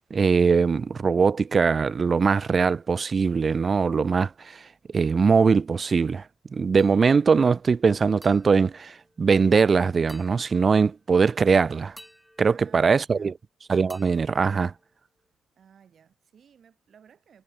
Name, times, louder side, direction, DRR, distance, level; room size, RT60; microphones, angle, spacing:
voice 1, 0.1-4.6 4.9-6.2 6.5-11.9 12.4-13.3 13.7-14.7, right 5 dB, 40° right, 0.5 m, -21 dB
sound 1, 6.8-7.4 8.2-9.6 10.1-11.1 12.0-13.4 13.9-15.3, equal, ahead, 4.2 m, -54 dB
voice 2, 12.4-13.4 15.6-17.4, right 7 dB, 55° right, 5.9 m, -56 dB
cardioid pair, 90°, 0 cm